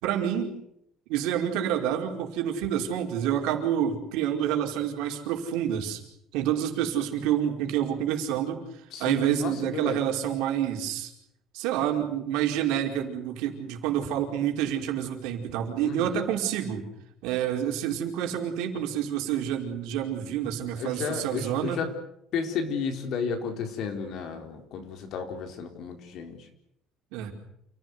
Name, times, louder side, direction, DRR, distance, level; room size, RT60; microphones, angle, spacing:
voice 1, 0.0-0.5 1.1-6.0 6.3-8.6 9.0-11.1 11.5-16.9 17.2-21.8 27.1-27.3, right 10 dB, 80° right, 2 dB, 4.9 m, -28 dB
voice 2, 8.9-10.0 15.8-16.2 20.8-21.9 22.3-26.5, left 5 dB, 50° left, 5 dB, 4.2 m, -33 dB
29.0 x 16.5 x 9.6 m, 0.79 s
cardioid pair, 175°, 0 cm